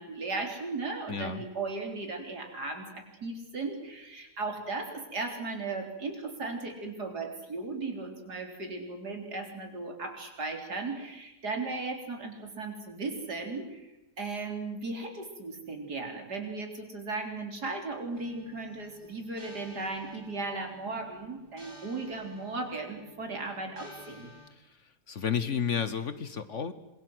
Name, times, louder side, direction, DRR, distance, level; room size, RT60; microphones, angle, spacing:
voice 1, 0.0-24.3, right 3 dB, 75° right, 4 dB, 4.3 m, -36 dB
voice 2, 1.1-1.4 24.5-24.8 25.1-26.7, left 7 dB, 50° left, 13 dB, 1.3 m, -32 dB
sound 1, 18.1-24.5, left 1 dB, 15° right, 3.2 m, -54 dB
27.0 x 22.0 x 7.9 m, 0.93 s
omnidirectional pair, 1.7 m